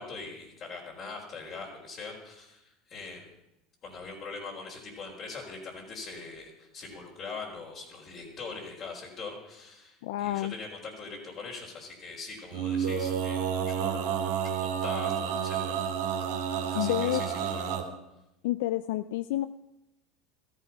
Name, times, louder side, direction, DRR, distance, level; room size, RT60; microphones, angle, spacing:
voice 1, 0.0-3.3 3.8-14.1 14.4-15.8 16.7-17.8, left 4 dB, 45° left, -4 dB, 4.3 m, -42 dB
voice 2, 10.0-10.5 16.7-17.2 18.4-19.5, left 15 dB, 75° left, 14 dB, 0.4 m, -29 dB
Male singing, 12.5-17.8, right 8 dB, 75° right, 2.6 m, -30 dB
14.5 x 13.5 x 5.9 m, 0.91 s
hypercardioid pair, 90°, 0 cm